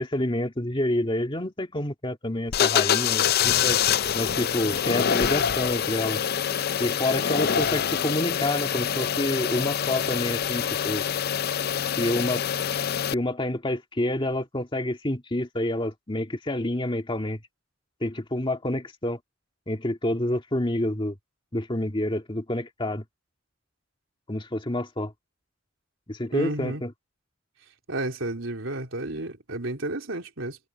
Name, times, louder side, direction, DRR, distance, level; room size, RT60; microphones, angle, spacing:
voice 1, 0.0-3.8 4.1-6.2 6.8-11.0 12.0-12.4 13.1-17.4 18.0-19.2 19.7-21.1 21.5-23.0 24.3-25.1 26.1-26.9, left 1 dB, 25° left, 2.0 m, -28 dB
sound 1, 2.5-13.1, left 8 dB, 50° left, 0.5 m, -25 dB
voice 2, 26.3-26.8 27.9-30.6, right 2 dB, 80° right, 3.8 m, -31 dB
head